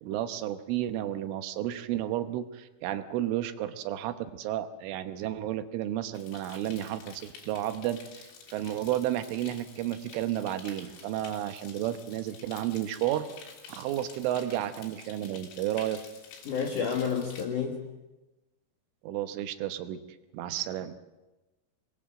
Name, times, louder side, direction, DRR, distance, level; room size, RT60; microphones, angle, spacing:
voice 1, 0.0-13.3 13.7-16.0 19.0-20.0 20.3-21.0, right 12 dB, 80° right, 10 dB, 3.4 m, -32 dB
sound 1, 6.1-17.5, left 6 dB, 85° left, 6.0 m, -50 dB
voice 2, 16.5-17.8, left 6 dB, 65° left, 3 dB, 2.1 m, -30 dB
26.0 x 20.5 x 7.7 m, 1.1 s
omnidirectional pair, 5.8 m